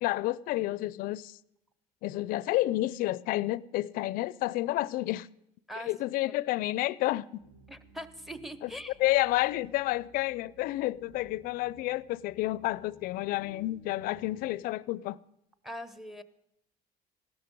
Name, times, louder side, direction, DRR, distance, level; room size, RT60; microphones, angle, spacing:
voice 1, 0.0-1.4 2.0-5.3 5.9-7.3 8.6-8.7 9.0-15.2, left 17 dB, 70° left, 0.4 m, -30 dB
sound 1, 7.4-14.5, right 1 dB, 80° right, 2.5 m, -58 dB
voice 2, 7.7-9.0 15.6-16.2, equal, ahead, 0.7 m, -41 dB
16.0 x 12.5 x 5.3 m
cardioid pair, 130°, 15 cm